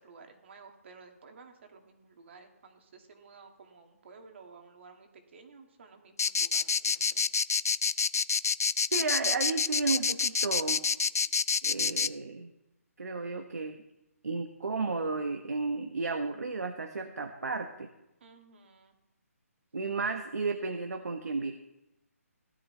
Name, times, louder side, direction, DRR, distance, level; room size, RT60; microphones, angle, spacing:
voice 1, 0.0-7.2 18.2-18.9, right 4 dB, 50° right, 4 dB, 2.2 m, -54 dB
sound 1, 6.2-12.1, left 5 dB, 75° left, 0.5 m, -27 dB
voice 2, 8.9-10.8 11.6-12.5 13.0-13.8 14.2-17.9 19.7-21.5, right 4 dB, 85° right, 5 dB, 1.3 m, -33 dB
16.5 x 11.5 x 3.3 m, 0.92 s
hypercardioid pair, 160°, 8 cm